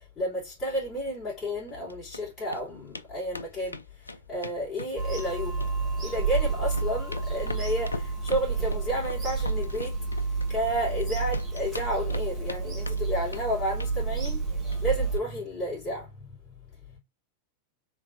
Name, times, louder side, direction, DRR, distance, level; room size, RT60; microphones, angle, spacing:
voice 1, 0.0-5.6 6.0-10.0 10.5-17.0, equal, 25° left, 2.5 m, -32 dB
sound 1, 1.7-2.2 2.5-2.6 2.9-3.1 3.3-5.3 5.6-6.3 6.6-11.0 11.3-12.6 12.9-13.5 13.8-14.0 14.2-14.4 14.7-14.8 15.1-15.2, left 3 dB, 80° left, 0.3 m, -40 dB
Bird vocalization bird call bird song / Telephone, 5.0-15.2, right 4 dB, 20° right, 1.3 m, -30 dB
3.5 x 3.4 x 2.5 m
figure-of-eight pair, 90°, 0 cm